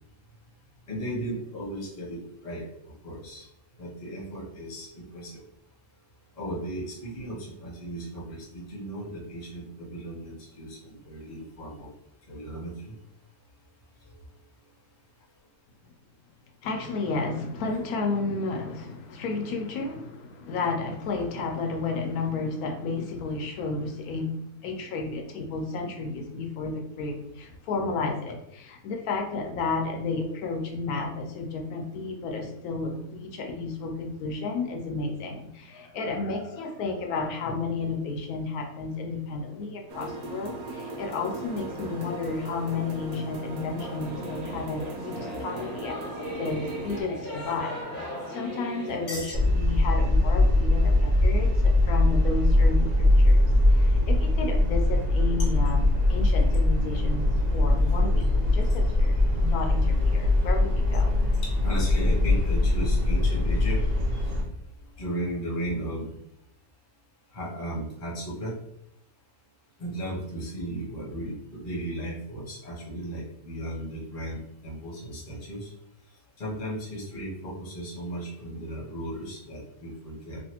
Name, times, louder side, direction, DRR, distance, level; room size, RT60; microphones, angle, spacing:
voice 1, 0.9-2.6 3.0-3.4 3.8-5.4 6.4-11.9 12.3-12.9 49.1-49.3 55.4-55.5 61.0-63.8 65.0-66.1 67.3-68.5 69.8-75.7 76.4-80.4, right 1 dB, 35° left, -5 dB, 0.9 m, -35 dB
voice 2, 16.6-24.3 24.6-61.1, left 3 dB, 75° left, 2 dB, 1.0 m, -32 dB
sound 1, 39.9-47.0, right 2 dB, 80° right, 1.1 m, -38 dB
Singing / Musical instrument, 43.8-49.3, equal, 15° right, 1.3 m, -38 dB
sound 2, 49.3-64.4, left 1 dB, 50° right, 0.5 m, -22 dB
3.1 x 2.4 x 2.9 m, 0.79 s
omnidirectional pair, 1.6 m